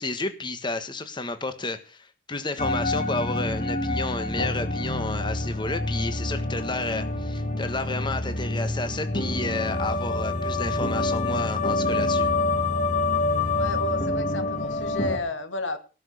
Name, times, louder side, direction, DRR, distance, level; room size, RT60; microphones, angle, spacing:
voice 1, 0.0-12.3, left 2 dB, 25° left, 9 dB, 1.4 m, -31 dB
sound 1, 2.6-15.2, left 2 dB, 40° left, 2.5 m, -27 dB
voice 2, 13.6-15.8, left 2 dB, 90° left, 9 dB, 2.3 m, -32 dB
18.0 x 6.3 x 8.4 m, 0.35 s
head